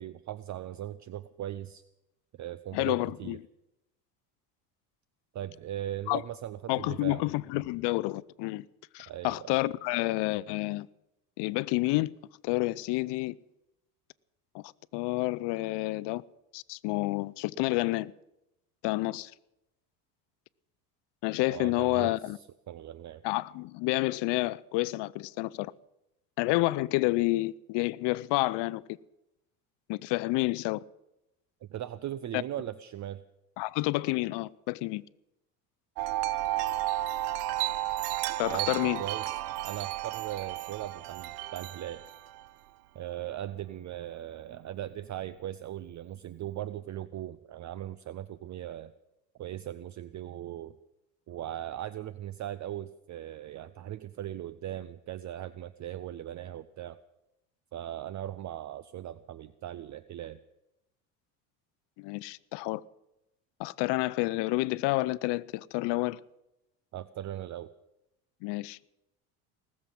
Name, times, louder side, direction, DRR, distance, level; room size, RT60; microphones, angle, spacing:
voice 1, 0.0-1.8 2.4-3.4 5.3-7.2 9.1-9.5 21.5-22.1 22.7-23.2 31.7-33.2 38.5-38.7 39.0-39.3 39.6-42.0 42.9-48.9 49.4-50.7 51.3-57.0 57.7-60.4 66.9-67.7, right 12 dB, 40° right, 0.7 m, -39 dB
voice 2, 2.7-3.4 6.1-6.2 6.7-8.7 8.9-10.9 11.4-12.1 12.4-13.4 14.5-16.2 16.5-18.1 18.8-19.3 21.2-22.4 23.2-25.7 26.4-28.8 29.9-30.8 32.3-32.4 33.6-35.0 38.4-39.0 62.0-62.8 63.6-66.2 68.4-68.8, left 20 dB, 65° left, 0.7 m, -29 dB
Wind chime, 36.0-42.5, right 15 dB, 80° right, 0.8 m, -33 dB
19.0 x 7.5 x 10.0 m
supercardioid pair, 80°, 46 cm